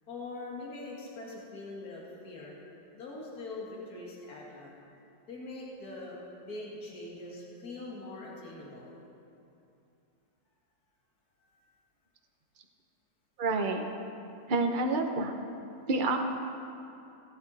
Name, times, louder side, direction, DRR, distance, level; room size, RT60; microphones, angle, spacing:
voice 1, 0.1-2.5 2.9-4.7 5.3-8.9 11.4-11.6, left 2 dB, 55° left, -4 dB, 2.5 m, -43 dB
voice 2, 13.4-13.9 14.5-15.3 15.9-16.2, right 3 dB, 40° right, 4 dB, 0.7 m, -28 dB
16.5 x 9.4 x 4.1 m, 2.8 s
omnidirectional pair, 1.9 m